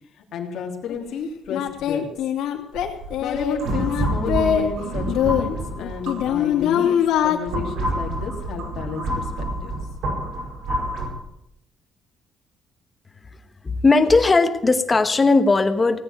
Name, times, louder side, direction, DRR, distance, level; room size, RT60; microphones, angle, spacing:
voice 1, 0.1-2.1 3.2-9.7, left 5 dB, 60° left, 2 dB, 3.0 m, -32 dB
Singing, 0.9-1.0 1.5-4.7 5.1-7.4, left 9 dB, 90° left, 2.6 m, -22 dB
sound 1, 2.8-6.6 7.2-11.1, right 1 dB, 70° right, 5.5 m, -28 dB
voice 2, 13.6-16.0, left 3 dB, 15° left, 8 dB, 1.1 m, -17 dB
18.0 x 8.7 x 9.1 m, 0.82 s
cardioid pair, 175°, 0 cm